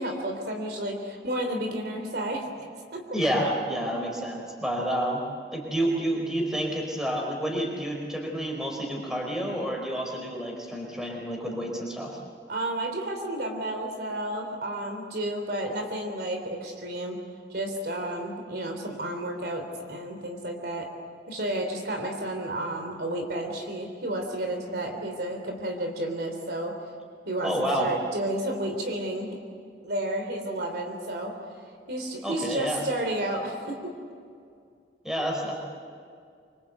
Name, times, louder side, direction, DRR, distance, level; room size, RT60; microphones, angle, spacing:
voice 1, 0.0-2.5 2.9-3.0 12.5-17.2 17.5-20.9 21.3-26.7 27.3-27.5 27.8-29.4 29.8-31.3 31.9-33.9, right 1 dB, 60° right, 4 dB, 3.6 m, -31 dB
voice 2, 3.1-5.2 5.5-12.2 27.4-27.9 32.2-32.8 35.0-35.6, right 1 dB, 5° right, -1 dB, 4.8 m, -29 dB
26.0 x 24.5 x 8.3 m, 2.2 s
head